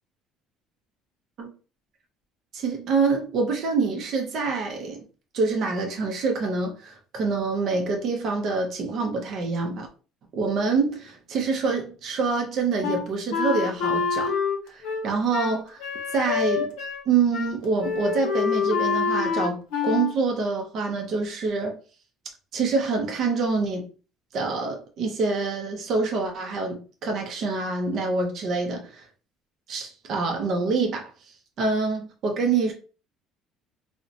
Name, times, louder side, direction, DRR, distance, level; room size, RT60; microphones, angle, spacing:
voice 1, 2.5-5.0 5.3-9.9 10.3-14.3 14.7-15.8 16.1-16.7 17.1-21.8 22.5-23.9 24.3-29.0 29.7-31.1 31.6-32.7, right 4 dB, 40° right, 0.5 m, -26 dB
Wind instrument woodwind instrument, 12.8-17.1 17.3-17.5 17.8-20.1, left 6 dB, 70° left, 0.6 m, -26 dB
2.7 x 2.0 x 2.5 m
cardioid pair, 175°, 0 cm